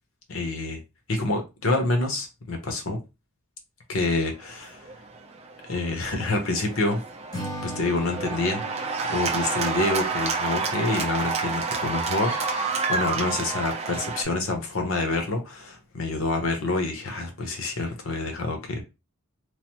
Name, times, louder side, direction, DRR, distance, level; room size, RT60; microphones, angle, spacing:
voice 1, 0.3-0.8 1.1-3.0 3.9-4.9 5.7-7.0 7.6-18.8, left 2 dB, 65° left, 0.8 m, -27 dB
Cheering / Applause, 4.6-14.2, right 4 dB, 30° right, 0.4 m, -29 dB
Acoustic guitar / Strum, 7.3-10.6, right 1 dB, 15° left, 0.6 m, -39 dB
3.1 x 2.0 x 2.9 m
head